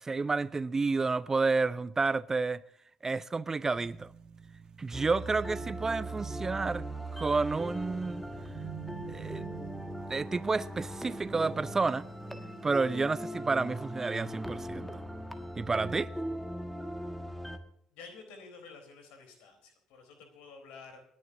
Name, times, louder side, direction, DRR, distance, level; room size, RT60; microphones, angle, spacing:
voice 1, 0.0-2.6 3.0-4.1 4.8-6.8 7.1-8.2 9.1-9.4 10.1-12.0 12.6-15.0 15.6-16.1, right 4 dB, 20° right, 0.5 m, -30 dB
sound 1, 3.8-13.4, right 9 dB, 40° right, 1.8 m, -50 dB
sound 2, 4.9-17.6, right 1 dB, ahead, 1.6 m, -39 dB
voice 2, 17.9-21.0, left 4 dB, 60° left, 3.9 m, -50 dB
29.0 x 10.5 x 2.8 m
figure-of-eight pair, 50°, 2 cm